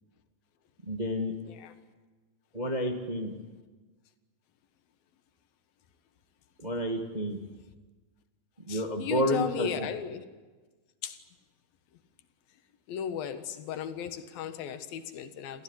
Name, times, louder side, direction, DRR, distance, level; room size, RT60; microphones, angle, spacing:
voice 1, 0.8-1.3 2.5-3.3 6.6-7.4 8.7-9.7, equal, 20° right, 4 dB, 1.1 m, -30 dB
voice 2, 8.7-10.2 11.0-11.2 12.9-15.6, left 8 dB, 85° left, 10 dB, 3.3 m, -36 dB
28.5 x 15.0 x 9.8 m, 1.3 s
omnidirectional pair, 4.1 m